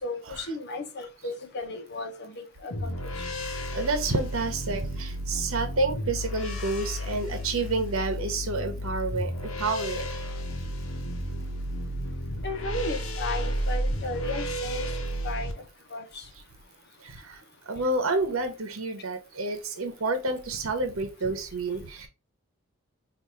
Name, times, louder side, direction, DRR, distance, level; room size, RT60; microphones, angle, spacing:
voice 1, 0.0-3.1 12.4-15.5 15.9-16.2, left 2 dB, 55° left, 6 dB, 0.9 m, -35 dB
sound 1, 2.7-15.5, equal, 85° left, 1.0 m, -32 dB
voice 2, 3.4-10.1 17.0-17.4 17.7-22.1, right 3 dB, 85° right, 6 dB, 0.9 m, -29 dB
5.2 x 2.6 x 2.8 m, 0.29 s
head